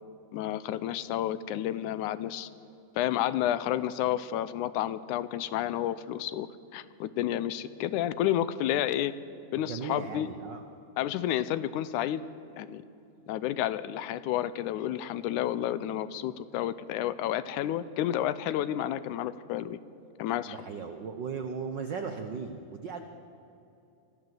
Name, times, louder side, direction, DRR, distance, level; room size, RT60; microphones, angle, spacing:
voice 1, 0.3-2.5 3.0-6.5 6.7-9.1 9.5-10.3 11.0-12.2 12.5-12.8 13.3-19.8 20.2-20.6, left 12 dB, 85° left, 15 dB, 2.1 m, -30 dB
voice 2, 9.5-10.6 20.5-23.0, right 5 dB, 90° right, 6 dB, 0.9 m, -37 dB
24.0 x 14.5 x 7.8 m, 2.7 s
omnidirectional pair, 3.5 m